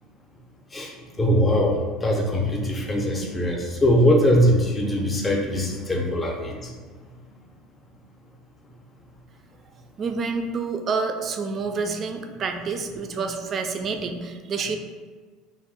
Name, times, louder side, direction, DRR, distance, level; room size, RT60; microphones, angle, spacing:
voice 1, 1.2-6.7, equal, 20° left, 0 dB, 0.6 m, -21 dB
voice 2, 10.0-14.8, right 4 dB, 40° right, 6 dB, 0.3 m, -28 dB
2.5 x 2.0 x 3.8 m, 1.5 s
supercardioid pair, 95°, 0 cm